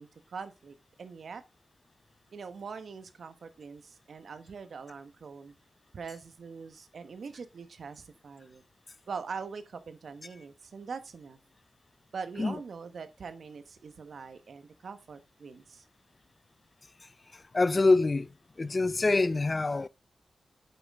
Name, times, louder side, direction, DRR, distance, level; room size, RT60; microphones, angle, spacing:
voice 1, 0.0-1.4 2.3-5.5 5.9-8.6 9.1-11.4 12.1-15.8, right 5 dB, 75° right, 1.2 m, -43 dB
voice 2, 17.3-18.3 18.6-19.9, left 3 dB, 40° left, 0.5 m, -25 dB
9.1 x 7.4 x 3.6 m
cardioid pair, 55°, 0 cm